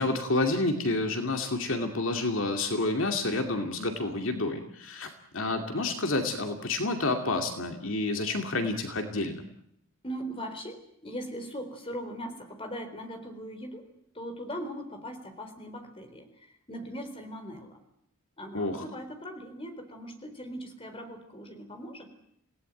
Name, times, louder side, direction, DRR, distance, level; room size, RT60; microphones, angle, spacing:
voice 1, 0.0-9.4 18.5-18.8, left 2 dB, 65° left, 4 dB, 2.6 m, -29 dB
voice 2, 10.0-13.8 14.1-17.7 18.4-22.1, equal, 25° left, 6 dB, 4.1 m, -40 dB
27.5 x 18.0 x 9.2 m, 0.75 s
head